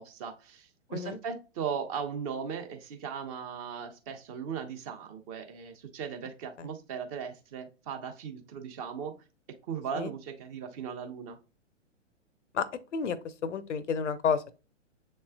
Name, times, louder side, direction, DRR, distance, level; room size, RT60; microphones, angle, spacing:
voice 1, 0.0-9.1 9.7-11.4, right 7 dB, 30° right, 0.7 m, -38 dB
voice 2, 13.4-14.4, left 6 dB, 75° left, 0.6 m, -30 dB
6.9 x 3.2 x 2.2 m
figure-of-eight pair, 115°, 37 cm